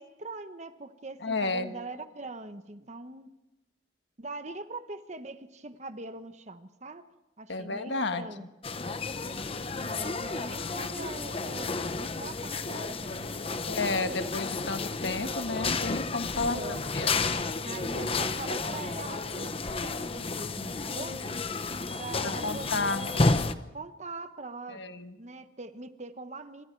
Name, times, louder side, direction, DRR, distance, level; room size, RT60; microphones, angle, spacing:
voice 1, 0.0-3.3 4.2-7.1 7.4-8.4 9.7-14.3 16.4-16.8 17.6-19.5 19.8-21.4 22.0-23.4 23.7-24.8 25.2-26.7, right 2 dB, 40° right, 10 dB, 1.1 m, -42 dB
voice 2, 1.2-1.7 7.5-8.5 13.7-17.3 22.2-23.1 24.7-25.1, left 3 dB, 70° left, 7 dB, 1.6 m, -32 dB
sound 1, 8.6-23.5, left 3 dB, 30° left, 0.9 m, -31 dB
27.5 x 25.0 x 4.7 m, 1.0 s
head